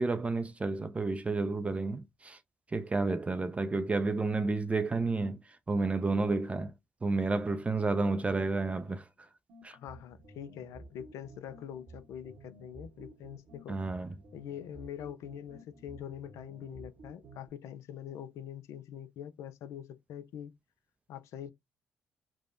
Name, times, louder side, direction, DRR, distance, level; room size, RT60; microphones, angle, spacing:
voice 1, 0.0-2.4 2.7-6.7 7.0-9.1 9.6-9.8 13.7-14.2, right 3 dB, 25° right, 0.4 m, -31 dB
sound 1, 9.5-17.5, right 2 dB, 60° right, 0.9 m, -53 dB
voice 2, 9.7-13.8 14.3-20.5 21.1-21.5, left 9 dB, 65° left, 0.4 m, -44 dB
3.2 x 2.1 x 2.5 m
hypercardioid pair, 50°, 5 cm